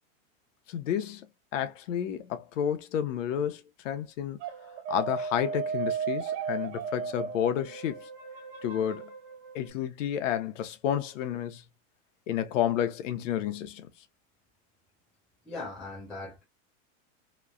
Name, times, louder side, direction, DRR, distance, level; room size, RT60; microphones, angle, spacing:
voice 1, 0.7-1.3 1.5-4.4 4.9-8.1 8.6-9.1 9.5-11.6 12.3-13.9, left 9 dB, 75° left, 0.8 m, -30 dB
sound 1, 4.4-9.7, right 6 dB, 55° right, 1.1 m, -35 dB
voice 2, 15.4-16.4, left 3 dB, ahead, 0.3 m, -39 dB
3.1 x 2.1 x 2.4 m
supercardioid pair, 170°, 38 cm